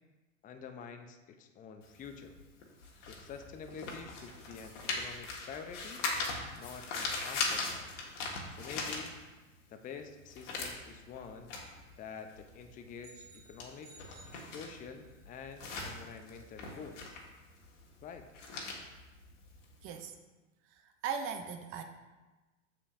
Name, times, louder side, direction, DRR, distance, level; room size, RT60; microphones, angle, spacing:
voice 1, 0.4-2.3 3.0-6.0 6.6-7.9 8.5-9.1 9.7-11.5 12.0-13.9 14.4-17.2 18.0-18.3, left 6 dB, 20° left, 6 dB, 0.6 m, -47 dB
sound 1, 1.8-9.6 9.9-20.0, left 3 dB, 65° left, 1.6 m, -40 dB
sound 2, 13.0-15.2, right 2 dB, 80° right, 2.0 m, -58 dB
voice 2, 19.8-20.1 20.8-21.8, right 6 dB, 35° right, 7 dB, 0.6 m, -38 dB
7.3 x 6.8 x 2.5 m, 1.2 s
hypercardioid pair, 95°, 39 cm